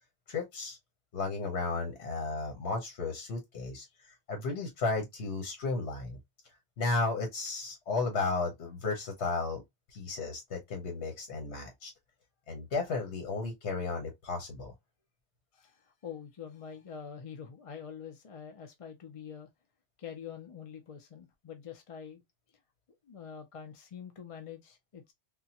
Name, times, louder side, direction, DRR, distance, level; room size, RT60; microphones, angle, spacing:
voice 1, 0.3-0.8 1.1-6.2 6.8-9.6 9.9-11.9 12.5-14.7, left 3 dB, 75° left, 1.2 m, -34 dB
voice 2, 15.5-19.5 20.0-22.2 23.0-25.1, left 7 dB, 40° left, 0.5 m, -45 dB
3.6 x 2.2 x 2.8 m
omnidirectional pair, 1.1 m